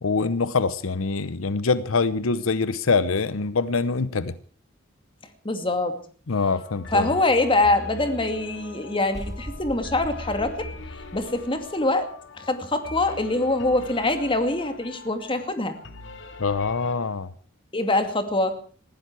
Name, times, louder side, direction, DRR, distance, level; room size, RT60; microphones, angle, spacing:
voice 1, 0.0-4.3 6.3-7.1 16.4-17.3, left 4 dB, 85° left, 0.8 m, -24 dB
voice 2, 5.4-5.9 6.9-10.6 11.1-12.1 12.4-15.8 17.7-18.6, left 2 dB, 25° left, 2.3 m, -24 dB
sound 1, 6.4-17.0, left 2 dB, 65° left, 2.1 m, -41 dB
sound 2, 9.1-11.9, equal, 20° right, 2.2 m, -40 dB
20.0 x 15.0 x 4.7 m
head